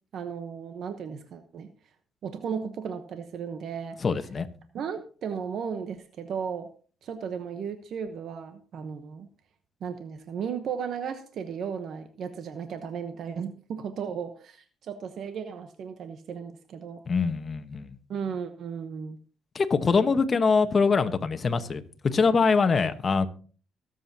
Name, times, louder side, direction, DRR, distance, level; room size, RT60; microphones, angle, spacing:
voice 1, 0.1-1.7 2.2-4.0 4.7-6.7 7.0-9.3 9.8-17.0 18.1-19.2, right 7 dB, 65° right, 1.0 m, -35 dB
voice 2, 4.0-4.5 17.1-17.9 19.5-23.3, left 4 dB, 40° left, 1.1 m, -23 dB
22.5 x 7.7 x 2.8 m
cardioid pair, 90°, 0 cm